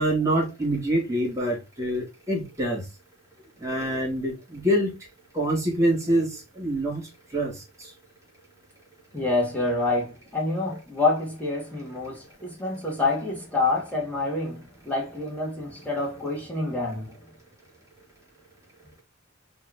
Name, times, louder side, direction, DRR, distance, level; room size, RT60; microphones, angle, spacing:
voice 1, 0.0-2.9 3.6-4.9 5.3-7.9 10.7-10.8, right 1 dB, 15° right, 1.3 m, -26 dB
voice 2, 9.1-14.5 14.9-17.1, left 2 dB, 10° left, 1.1 m, -27 dB
2.7 x 2.4 x 3.3 m
head